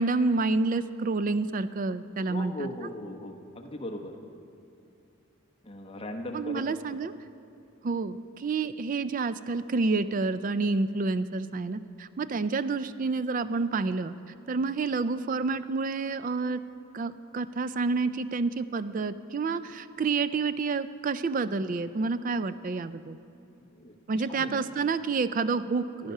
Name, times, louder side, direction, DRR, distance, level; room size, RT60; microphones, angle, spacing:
voice 1, 0.0-2.7 6.3-7.1 7.8-14.1 14.5-16.6 16.9-23.2 24.1-26.1, right 3 dB, 35° right, 14 dB, 0.3 m, -29 dB
voice 2, 2.2-4.2 5.6-6.6 23.7-23.9 24.3-24.6, left 1 dB, 25° left, 3 dB, 0.9 m, -38 dB
15.0 x 10.5 x 5.5 m, 2.7 s
head